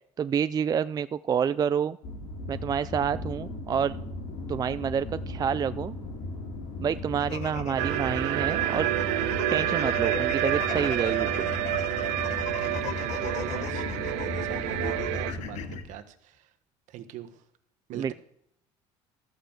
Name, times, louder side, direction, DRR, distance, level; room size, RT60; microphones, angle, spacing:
voice 1, 0.2-2.0 2.5-4.0 4.5-6.0 6.8-8.9 9.5-11.5 17.9-18.1, right 7 dB, 30° right, 14 dB, 0.4 m, -28 dB
sound 1, 2.0-15.8, left 2 dB, 80° left, 6.0 m, -37 dB
sound 2, 7.2-15.8, left 8 dB, 60° left, 1.3 m, -39 dB
sound 3, 7.8-15.3, right 14 dB, 90° right, 0.9 m, -29 dB
voice 2, 12.1-16.0 16.9-17.3 17.9-18.1, right 11 dB, 65° right, 8 dB, 1.3 m, -41 dB
13.5 x 5.4 x 7.3 m, 0.76 s
supercardioid pair, 100°, 13 cm